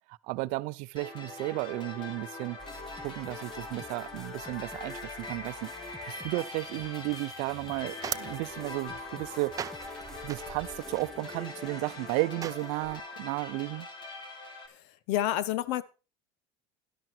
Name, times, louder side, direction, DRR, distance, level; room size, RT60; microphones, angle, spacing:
voice 1, 0.1-2.6 3.0-5.7 6.1-9.6 10.2-13.9, right 22 dB, 70° right, 0.7 m, -33 dB
sound 1, 1.0-14.7, left 3 dB, 35° left, 3.2 m, -42 dB
sound 2, 2.6-12.3, equal, 5° left, 1.2 m, -51 dB
sound 3, 7.4-13.0, right 8 dB, 25° right, 0.6 m, -42 dB
voice 2, 14.7-15.8, left 13 dB, 70° left, 1.1 m, -30 dB
12.0 x 11.5 x 4.6 m
supercardioid pair, 125°, 14 cm